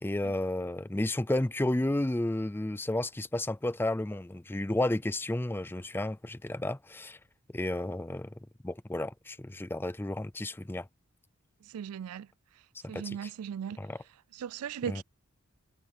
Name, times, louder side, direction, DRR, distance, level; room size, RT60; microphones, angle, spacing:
voice 1, 0.0-7.2 7.5-8.3 8.6-10.9 12.9-13.3 13.8-14.0 14.9-15.0, left 1 dB, 10° left, 0.4 m, -32 dB
voice 2, 11.7-12.3 12.9-13.8 14.3-15.0, right 8 dB, 90° right, 0.4 m, -37 dB
head